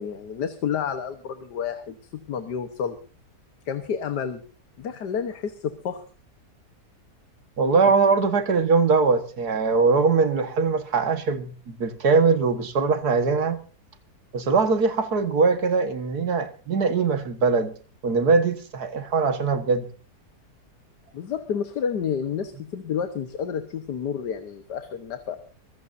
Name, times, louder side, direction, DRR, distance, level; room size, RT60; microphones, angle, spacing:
voice 1, 0.0-3.0 3.7-4.4 4.8-6.0 7.8-7.9 21.1-25.4, left 7 dB, 80° left, 1.8 m, -30 dB
voice 2, 7.6-13.6 14.3-17.7 18.0-19.9, right 4 dB, 70° right, 2.1 m, -21 dB
24.5 x 15.5 x 2.7 m
omnidirectional pair, 1.8 m